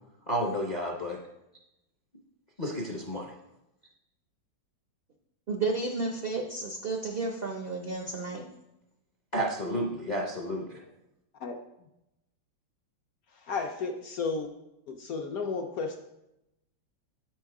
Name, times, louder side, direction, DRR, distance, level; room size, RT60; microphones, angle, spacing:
voice 1, 0.3-1.2 2.6-3.3 9.3-10.8, equal, 50° left, -1 dB, 0.5 m, -31 dB
voice 2, 5.5-8.4, right 3 dB, 75° right, 2 dB, 0.5 m, -32 dB
voice 3, 13.3-14.5 14.9-16.0, left 4 dB, 70° left, 4 dB, 0.9 m, -33 dB
8.5 x 4.5 x 4.7 m, 0.89 s
omnidirectional pair, 2.0 m